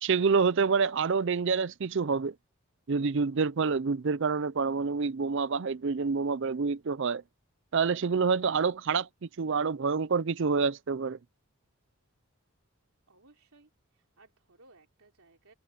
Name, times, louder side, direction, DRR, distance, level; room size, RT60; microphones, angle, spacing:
voice 1, 0.0-2.3 2.9-7.2 7.7-11.2, right 5 dB, 55° right, 0.5 m, -27 dB
voice 2, 13.1-15.5, right 2 dB, 75° right, 3.4 m, -61 dB
head